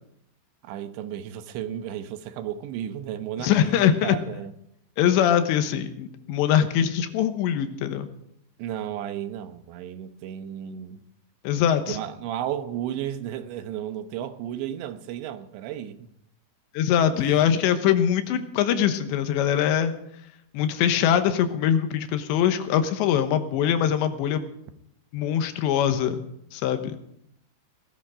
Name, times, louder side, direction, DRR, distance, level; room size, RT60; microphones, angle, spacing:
voice 1, 0.6-3.8 4.0-4.5 8.6-11.0 11.9-16.1 17.1-17.3, right 10 dB, 90° right, 3.3 m, -33 dB
voice 2, 3.4-4.2 5.0-8.1 11.4-12.0 16.7-19.9 20.5-24.5 25.1-26.2 26.5-27.0, left 9 dB, 85° left, 3.3 m, -22 dB
18.5 x 12.5 x 5.0 m
omnidirectional pair, 5.1 m